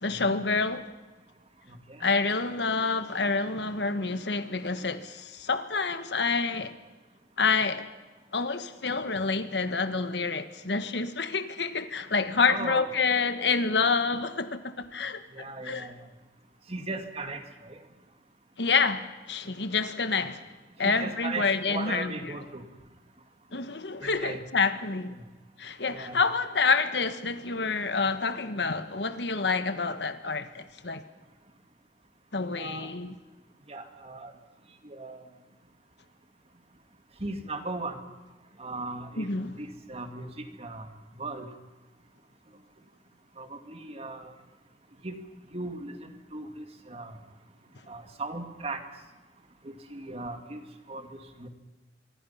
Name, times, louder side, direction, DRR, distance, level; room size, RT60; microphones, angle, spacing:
voice 1, 0.0-0.8 2.0-6.7 7.4-7.9 8.3-15.2 15.6-15.9 18.6-20.4 20.8-22.4 23.5-25.1 25.6-31.0 32.3-33.1 39.2-39.6, left 4 dB, 70° left, 1.4 m, -28 dB
voice 2, 12.5-12.9 15.3-15.9 16.7-17.7 20.8-22.6 24.0-24.4 25.9-26.2 32.6-32.9 33.7-34.3 34.8-35.2 37.2-38.0 38.6-39.3 39.6-40.3 40.6-40.9 41.2-41.5 43.4-44.3 45.0-45.2 45.5-47.1 47.9-48.8 49.6-50.6 50.9-51.5, right 2 dB, 35° right, 2.1 m, -37 dB
25.0 x 23.5 x 5.7 m
head